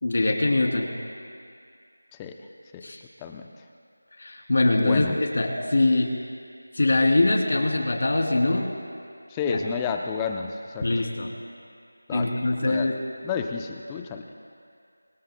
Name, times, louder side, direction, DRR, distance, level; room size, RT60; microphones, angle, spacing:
voice 1, 0.0-0.9 2.8-3.0 4.2-6.1 6.7-8.7 9.5-9.6 10.8-11.3 12.1-12.9, left 2 dB, 55° left, 1 dB, 2.9 m, -23 dB
voice 2, 4.7-5.2 9.3-10.9 12.1-12.3 12.6-12.9 13.2-14.3, left 6 dB, 10° left, 4 dB, 0.5 m, -31 dB
26.0 x 21.0 x 2.2 m, 2.3 s
figure-of-eight pair, 170°, 0 cm